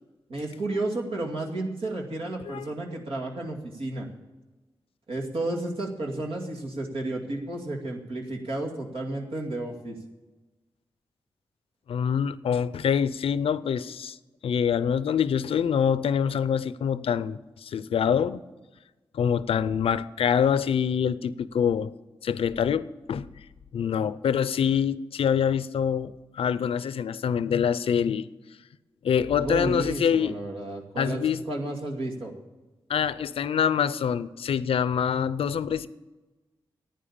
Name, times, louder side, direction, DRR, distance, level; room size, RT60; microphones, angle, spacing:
voice 1, 0.3-4.1 5.1-10.0 29.4-31.2 31.5-32.3, right 2 dB, 80° right, 2.4 m, -32 dB
voice 2, 11.9-14.2 14.4-18.4 19.1-21.9 22.2-23.3 23.7-28.3 29.0-30.3 31.0-31.4 32.9-35.9, left 7 dB, 85° left, 0.5 m, -25 dB
11.5 x 9.2 x 8.7 m
cardioid pair, 50°, 9 cm